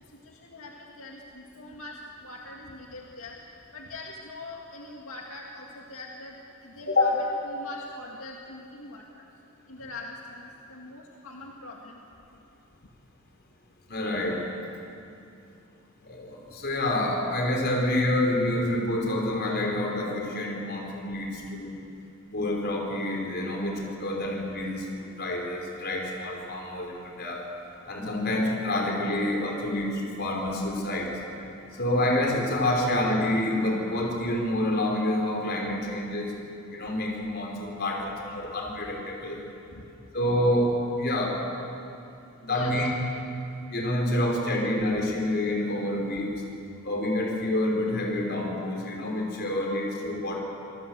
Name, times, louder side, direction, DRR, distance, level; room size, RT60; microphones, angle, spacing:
voice 1, 0.3-3.4 3.7-6.4 6.6-9.2 9.7-12.0 39.7-39.8 42.5-42.9, left 2 dB, 80° left, -1 dB, 2.0 m, -42 dB
voice 2, 13.9-14.5 16.0-21.8 22.3-27.4 27.9-31.1 31.7-36.3 36.7-39.4 40.1-41.3 42.4-42.9 43.7-46.3 46.8-50.4, left 1 dB, 50° left, 0 dB, 5.2 m, -27 dB
27.0 x 19.0 x 8.0 m, 2.7 s
head